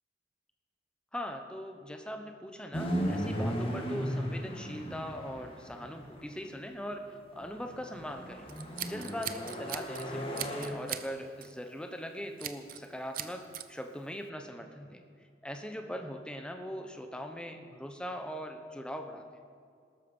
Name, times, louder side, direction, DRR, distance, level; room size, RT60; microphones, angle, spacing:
voice 1, 1.1-8.5 8.8-15.0 15.4-19.2, equal, 5° left, 5 dB, 1.0 m, -41 dB
sound 1, 2.7-6.3 7.4-10.7, equal, 30° left, 2.1 m, -36 dB
Scissors, 8.5-10.1 10.4-11.1 11.4-11.6 12.4-12.9 13.1-13.7, right 10 dB, 50° right, 0.7 m, -39 dB
18.5 x 13.0 x 5.5 m, 2.3 s
head